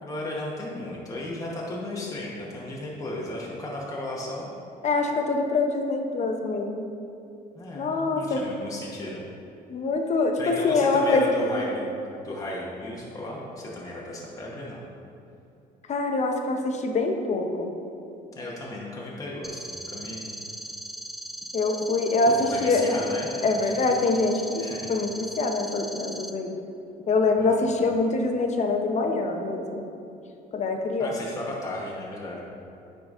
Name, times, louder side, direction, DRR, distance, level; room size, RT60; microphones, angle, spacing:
voice 1, 0.0-4.5 7.5-9.2 10.4-11.8 12.2-14.8 18.3-20.4 22.2-23.9 24.6-24.9 27.4-27.7 31.0-32.5, left 1 dB, 20° left, -4 dB, 1.0 m, -35 dB
voice 2, 4.8-6.8 7.7-8.4 9.7-11.6 15.9-17.7 21.5-22.3 22.6-22.8 23.4-26.5 27.1-29.8 30.5-31.2, left 3 dB, 45° left, 4 dB, 0.7 m, -24 dB
sound 1, 19.4-26.3, right 1 dB, ahead, 0.4 m, -38 dB
9.6 x 3.9 x 3.6 m, 2.7 s
cardioid pair, 110°, 17 cm